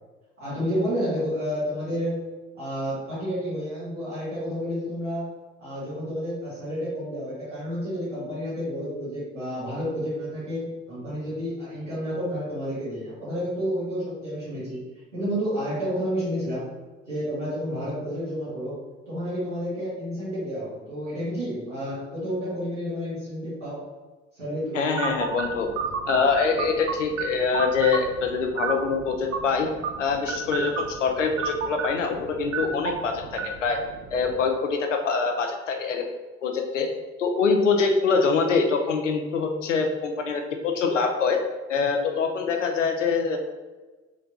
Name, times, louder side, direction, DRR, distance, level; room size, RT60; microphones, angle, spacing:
voice 1, 0.4-2.2 2.5-5.3 5.6-14.8 15.1-16.7 17.1-18.8 19.1-23.8 24.3-24.9, equal, 90° right, -13 dB, 1.5 m, -30 dB
voice 2, 24.7-25.7 26.1-29.7 30.0-33.8 34.1-36.1 36.4-36.9 37.2-41.4 41.7-43.4, left 5 dB, 85° left, 4 dB, 0.5 m, -24 dB
sound 1, 25.0-34.5, right 5 dB, 45° right, 0.6 m, -33 dB
3.3 x 3.2 x 3.9 m, 1.2 s
figure-of-eight pair, 50°, 36 cm